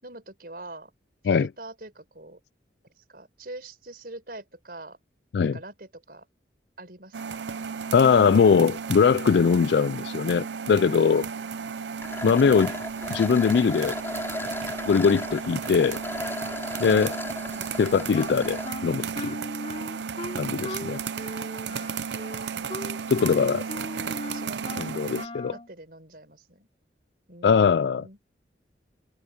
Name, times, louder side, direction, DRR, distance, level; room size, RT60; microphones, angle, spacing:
voice 1, 0.0-0.9 1.2-2.4 3.1-5.0 5.4-6.3 6.8-7.4 17.5-17.9 23.3-25.0 25.5-26.7 27.3-28.2, right 2 dB, 55° right, 5.9 m, -44 dB
sound 1, 7.1-25.3, right 6 dB, 80° right, 0.6 m, -34 dB
voice 2, 7.9-11.3 12.2-12.7 13.1-14.0 14.9-16.0 16.8-17.2 17.8-19.4 20.4-21.0 23.1-23.6 24.8-25.5 27.4-28.1, left 6 dB, 70° left, 0.3 m, -21 dB
sound 2, 12.0-18.7, left 1 dB, 15° left, 3.4 m, -35 dB
Wind instrument woodwind instrument, 18.1-25.7, left 1 dB, 35° left, 3.8 m, -38 dB
open air
head